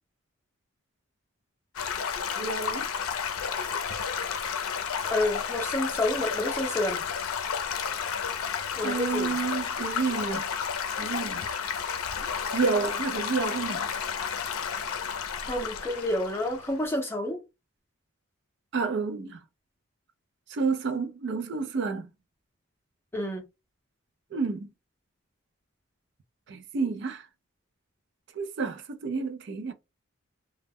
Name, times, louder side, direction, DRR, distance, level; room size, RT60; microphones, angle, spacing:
Stream / Gurgling / Trickle dribble, 1.8-16.9, left 7 dB, 85° left, 0.5 m, -32 dB
voice 1, 2.4-2.9 8.8-10.5 11.0-11.5 12.5-13.9 18.7-19.4 20.5-22.1 24.3-24.7 26.5-27.3 28.3-29.7, right 4 dB, 55° right, 0.4 m, -30 dB
voice 2, 5.1-7.0 8.8-9.3 15.5-17.4 23.1-23.4, left 1 dB, 10° left, 0.6 m, -29 dB
2.2 x 2.0 x 3.4 m
head